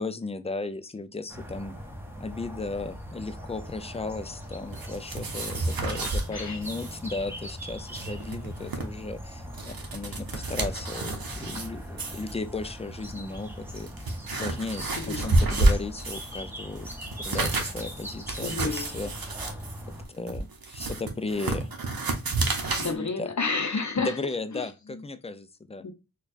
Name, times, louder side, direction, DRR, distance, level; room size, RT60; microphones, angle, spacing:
voice 1, 0.0-1.7 2.2-16.9 17.2-19.3 20.1-21.7 22.7-23.3 24.0-25.9, left 3 dB, 20° left, 0.3 m, -35 dB
sound 1, 1.3-20.1, equal, 5° right, 0.8 m, -40 dB
sound 2, 4.7-6.3 6.6-7.0 7.2-7.3 7.7-8.8 9.4-11.7 12.0-12.3 13.1-13.2 13.7-16.4 16.7-22.9, right 2 dB, 75° right, 0.8 m, -29 dB
voice 2, 15.0-15.3 18.4-18.9 22.8-24.2 24.5-24.6 24.9-25.0 25.8-25.9, left 4 dB, 50° left, 0.7 m, -30 dB
4.3 x 2.3 x 2.4 m
wide cardioid pair, 65°, 36 cm